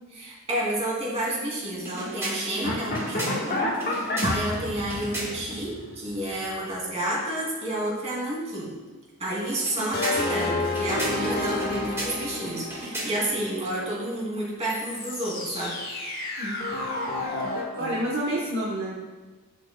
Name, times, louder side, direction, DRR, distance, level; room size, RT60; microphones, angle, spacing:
voice 1, 0.1-8.8 9.2-15.8 17.8-17.9, right 1 dB, 30° right, -5 dB, 2.6 m, -30 dB
sound 1, 1.7-5.6 9.5-13.4, right 1 dB, 10° right, 1.8 m, -36 dB
sound 2, 2.6-6.7 9.9-13.7 14.7-17.6, left 2 dB, 45° left, 1.3 m, -30 dB
voice 2, 17.7-18.9, right 1 dB, 55° right, -5 dB, 1.1 m, -29 dB
11.0 x 7.5 x 2.2 m, 1.3 s
head